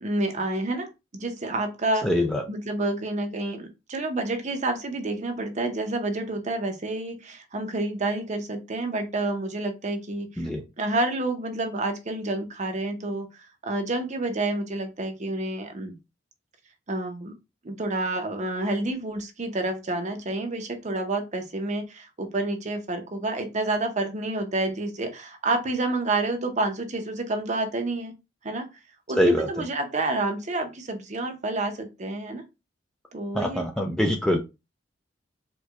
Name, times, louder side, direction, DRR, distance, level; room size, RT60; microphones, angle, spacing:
voice 1, 0.0-2.1 2.5-10.5 10.8-13.3 13.6-15.9 16.9-17.3 17.6-28.1 28.4-28.7 29.1-32.4 33.1-33.6, right 2 dB, 40° right, 6 dB, 0.7 m, -29 dB
voice 2, 2.0-2.4 10.4-10.6 29.1-29.6 33.3-34.4, equal, 5° left, 3 dB, 0.4 m, -24 dB
4.4 x 2.2 x 2.4 m, 0.25 s
head